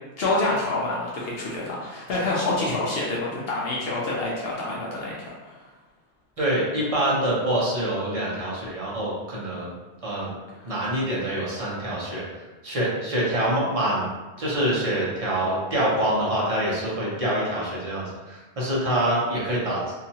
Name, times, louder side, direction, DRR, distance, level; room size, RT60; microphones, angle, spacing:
voice 1, 0.2-5.6, left 2 dB, 65° left, -5 dB, 0.7 m, -27 dB
voice 2, 6.4-9.7 10.0-10.3 10.7-14.1 14.4-19.9, right 1 dB, 40° right, -6 dB, 0.6 m, -25 dB
2.7 x 2.3 x 2.7 m, 1.2 s
omnidirectional pair, 1.1 m